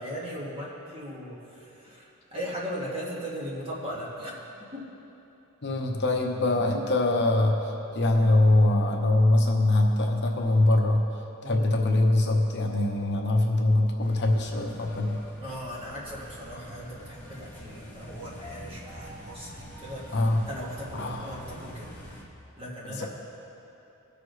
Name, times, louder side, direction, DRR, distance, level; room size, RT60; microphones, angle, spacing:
voice 1, 0.0-4.3 4.7-4.9 11.4-11.7 15.4-20.2 20.5-21.9 22.6-23.1, equal, 25° right, -5 dB, 1.9 m, -38 dB
voice 2, 5.6-11.1 11.4-15.2 20.1-20.5 20.9-21.4 23.0-23.1, left 2 dB, 50° left, 1 dB, 0.9 m, -23 dB
sound 1, 14.0-22.2, left 1 dB, 10° left, 1.4 m, -45 dB
20.0 x 6.8 x 3.2 m, 3.0 s
head